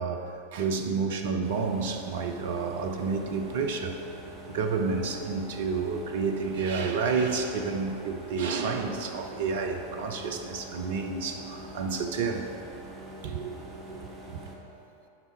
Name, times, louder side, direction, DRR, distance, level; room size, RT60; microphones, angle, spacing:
voice 1, 0.0-3.9 4.5-12.5 13.2-13.6 13.9-14.1, right 5 dB, 55° right, 4 dB, 0.7 m, -30 dB
sound 1, 1.4-14.6, right 1 dB, 25° right, 1.4 m, -44 dB
9.9 x 5.6 x 4.5 m, 2.7 s
figure-of-eight pair, 90°, 0 cm